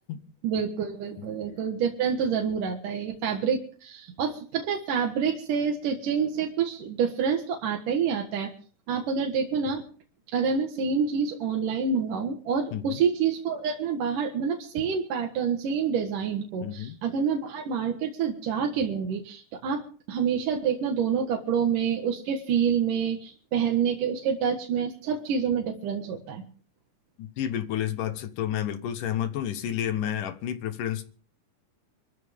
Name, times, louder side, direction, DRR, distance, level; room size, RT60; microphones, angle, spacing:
voice 1, 0.4-8.5 8.9-9.8 10.3-26.4, right 6 dB, 70° right, 3.2 m, -27 dB
voice 2, 12.7-13.0 16.6-17.0 27.2-31.1, left 10 dB, 75° left, 2.7 m, -30 dB
25.5 x 13.5 x 3.6 m
omnidirectional pair, 3.8 m